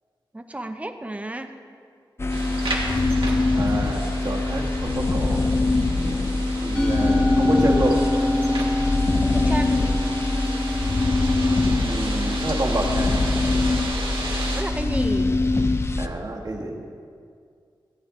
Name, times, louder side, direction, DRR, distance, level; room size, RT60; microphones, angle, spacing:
voice 1, 0.3-1.5 9.2-9.9 14.5-15.4, right 1 dB, 15° right, 7 dB, 0.7 m, -32 dB
sound 1, 2.2-16.1, left 2 dB, 30° left, 0.5 m, -23 dB
sound 2, 2.3-14.6, right 2 dB, 80° right, 1.8 m, -34 dB
voice 2, 3.5-5.4 6.6-8.0 11.8-13.1 16.0-16.8, right 2 dB, 50° right, -1 dB, 1.5 m, -28 dB
Musical instrument, 6.7-13.1, left 1 dB, 10° left, 1.4 m, -26 dB
15.5 x 9.2 x 3.7 m, 2.2 s
wide cardioid pair, 105°, 9 cm